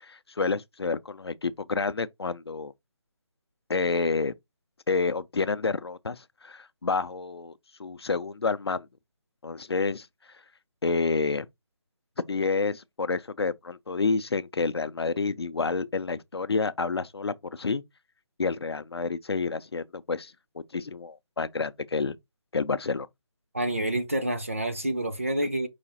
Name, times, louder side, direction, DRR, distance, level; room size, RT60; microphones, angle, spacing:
voice 1, 0.0-2.7 3.7-4.3 4.9-7.5 7.8-8.9 9.4-10.1 10.8-11.5 12.3-17.8 18.4-22.2 22.5-23.1, left 4 dB, 55° left, 0.5 m, -29 dB
voice 2, 23.5-25.7, right 1 dB, 25° right, 0.5 m, -28 dB
4.8 x 2.4 x 4.1 m
hypercardioid pair, 180°, 16 cm